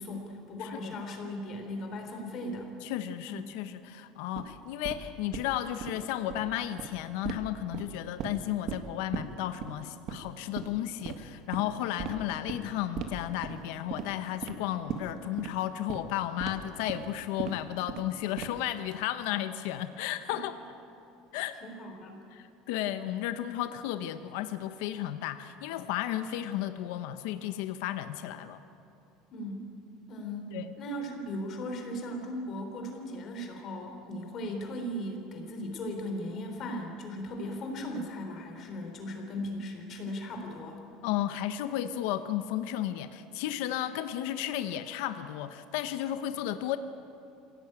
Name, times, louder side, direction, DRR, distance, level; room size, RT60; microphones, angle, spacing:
voice 1, 0.0-2.7 3.3-3.5 20.3-20.4 21.6-22.2 29.3-29.7 30.1-40.9, left 1 dB, 30° left, 4 dB, 3.7 m, -37 dB
voice 2, 0.6-0.9 2.8-20.6 21.3-21.6 22.3-28.6 30.5-30.7 41.0-46.8, left 12 dB, 70° left, 10 dB, 1.0 m, -33 dB
sound 1, 4.3-4.4 4.8-5.0 5.3-5.5 5.8-5.9 6.2-6.4 6.8-6.9 7.2-7.4 7.7-8.4 8.7-8.8 9.1-9.2 9.6-9.7 10.1-10.3 10.6-10.7 11.0-11.2 11.5-11.6 12.0-12.1 12.5-12.6 13.0-13.1 13.4-13.6 13.9-14.1 14.4-14.5 14.9-15.0 15.4-15.5 15.9-16.0 16.4-16.5 16.9-17.0 17.4-17.5 17.9-18.1 18.4-18.7, right 9 dB, 40° right, 1.7 m, -36 dB
26.5 x 17.0 x 9.0 m, 2.8 s
cardioid pair, 175°, 0 cm